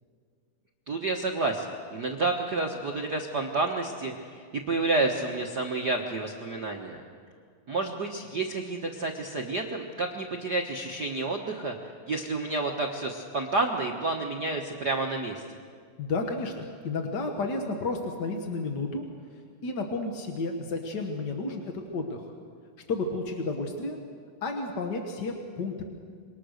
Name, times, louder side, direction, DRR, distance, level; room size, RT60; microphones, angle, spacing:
voice 1, 0.9-7.0 7.7-11.7 12.1-15.4, right 3 dB, 65° right, 1 dB, 0.9 m, -30 dB
voice 2, 16.0-16.5 16.8-19.0 19.6-22.3 22.9-24.0 24.4-25.8, left 3 dB, 50° left, 3 dB, 1.4 m, -31 dB
27.0 x 23.0 x 6.6 m, 2.1 s
omnidirectional pair, 3.9 m